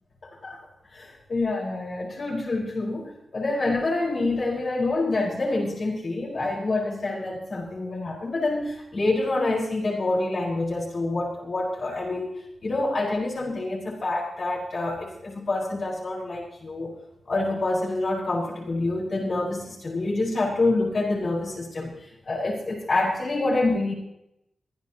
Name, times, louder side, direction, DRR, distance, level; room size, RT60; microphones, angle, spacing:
voice 1, 0.2-0.6 0.9-16.9 17.3-23.9, left 2 dB, 45° left, -5 dB, 5.0 m, -27 dB
24.5 x 15.0 x 3.0 m, 0.82 s
wide cardioid pair, 160°, 0 cm